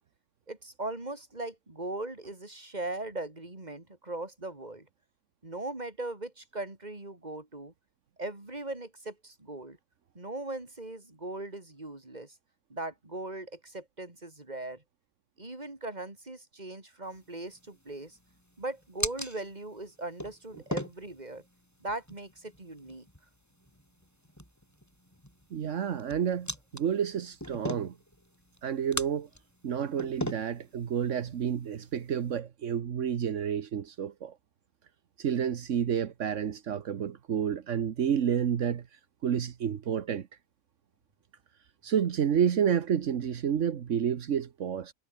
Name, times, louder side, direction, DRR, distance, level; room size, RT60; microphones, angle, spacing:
voice 1, 0.5-4.9 5.4-7.7 8.2-9.8 10.2-12.3 12.7-14.8 15.4-18.2 18.6-21.4 21.8-23.1, right 2 dB, 35° right, 3.7 m, -39 dB
sound 1, 17.0-32.4, equal, 15° left, 6.4 m, -42 dB
voice 2, 25.5-27.9 28.6-29.3 29.6-34.3 35.2-38.8 39.2-40.3 41.8-44.9, right 8 dB, 80° right, 1.4 m, -30 dB
omnidirectional pair, 1.2 m